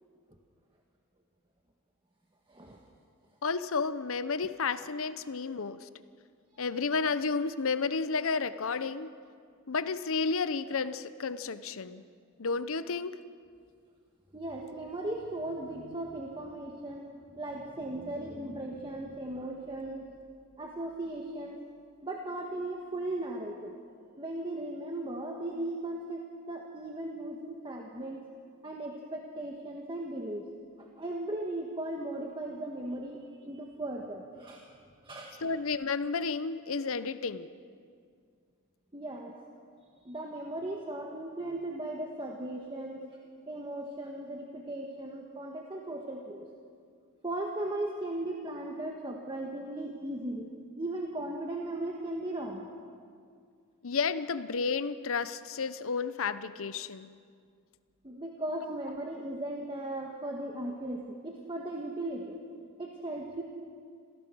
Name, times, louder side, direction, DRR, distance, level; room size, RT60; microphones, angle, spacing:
voice 1, 2.5-2.8 14.3-20.1 20.6-21.6 22.0-23.7 24.2-28.2 28.6-30.5 30.8-34.6 35.0-35.3 38.9-39.4 40.0-43.0 43.5-46.5 47.2-50.5 50.8-52.7 58.0-62.4 62.8-63.4, right 1 dB, 25° right, 0 dB, 1.5 m, -37 dB
voice 2, 3.4-5.9 6.6-9.1 9.7-12.0 12.4-13.1 35.4-37.5 53.8-57.1, left 4 dB, 65° left, 13 dB, 0.8 m, -31 dB
26.5 x 15.5 x 6.3 m, 2.2 s
head